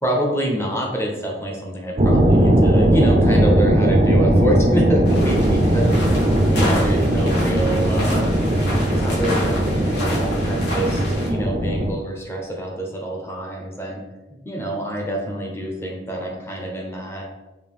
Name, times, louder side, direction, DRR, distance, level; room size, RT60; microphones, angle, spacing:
voice 1, 0.0-5.9 6.5-8.2 9.0-14.0 14.4-17.2, right 1 dB, 15° left, -1 dB, 0.7 m, -26 dB
sound 1, 2.0-11.9, right 1 dB, 40° right, 0.4 m, -18 dB
sound 2, 5.1-11.3, left 1 dB, 70° left, 1.5 m, -30 dB
5.1 x 2.5 x 3.5 m, 1.1 s
head